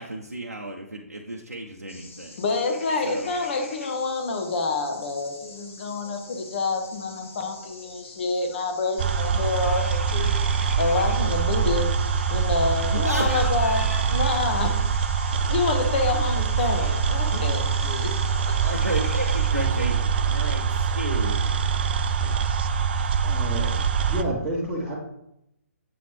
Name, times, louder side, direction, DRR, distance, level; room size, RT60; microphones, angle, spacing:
voice 1, 0.0-2.4 3.0-3.3 12.8-14.8 18.6-21.4, right 1 dB, 90° right, -1 dB, 0.7 m, -33 dB
sound 1, 1.9-19.5, left 2 dB, 60° left, 1.2 m, -45 dB
voice 2, 2.4-10.3 10.8-12.0 12.3-14.8 15.5-18.1, left 3 dB, 40° left, 4 dB, 1.0 m, -27 dB
sound 2, 9.0-24.2, right 6 dB, 40° right, 0.5 m, -24 dB
voice 3, 22.5-23.7 24.1-25.0, right 1 dB, 5° right, -11 dB, 1.2 m, -31 dB
7.7 x 4.1 x 3.2 m, 0.82 s
figure-of-eight pair, 135°, 8 cm